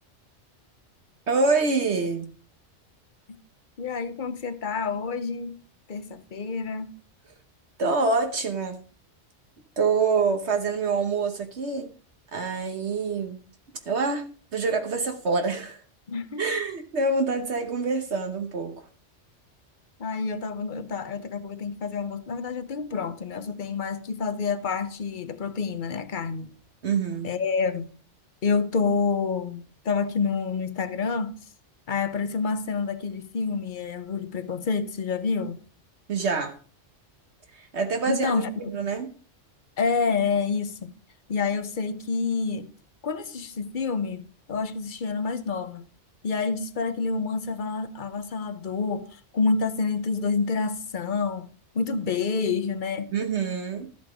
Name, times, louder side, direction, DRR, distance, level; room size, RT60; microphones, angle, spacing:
voice 1, 1.3-2.3 7.8-8.8 9.8-11.9 12.3-13.4 13.9-15.8 16.4-18.7 26.8-27.3 36.1-36.5 37.5-39.1 53.1-53.9, right 4 dB, 70° right, 1.4 m, -26 dB
voice 2, 3.8-5.6 5.9-6.9 16.1-16.5 20.0-26.5 27.2-27.9 28.4-31.4 31.9-35.6 38.1-38.5 39.8-41.0 41.3-42.7 43.0-45.8 46.2-51.5 51.7-53.1, left 5 dB, 45° left, 1.0 m, -28 dB
13.0 x 7.7 x 5.0 m
omnidirectional pair, 1.2 m